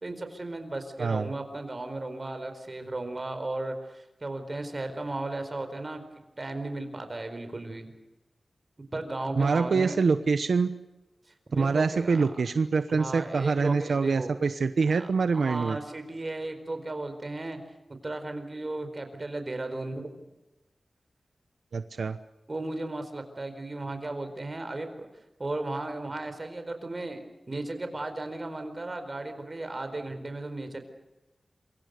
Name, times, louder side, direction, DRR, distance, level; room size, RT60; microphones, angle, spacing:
voice 1, 0.0-6.0 6.4-7.9 8.9-10.0 11.5-12.3 12.9-14.3 14.9-17.6 18.0-20.1 22.5-25.1 25.4-30.8, right 2 dB, 35° right, 8 dB, 4.6 m, -35 dB
voice 2, 1.0-1.3 9.4-10.7 11.6-15.8 21.7-22.2, right 4 dB, 85° right, 10 dB, 1.0 m, -25 dB
27.5 x 24.0 x 6.7 m, 1.0 s
wide cardioid pair, 110°, 0 cm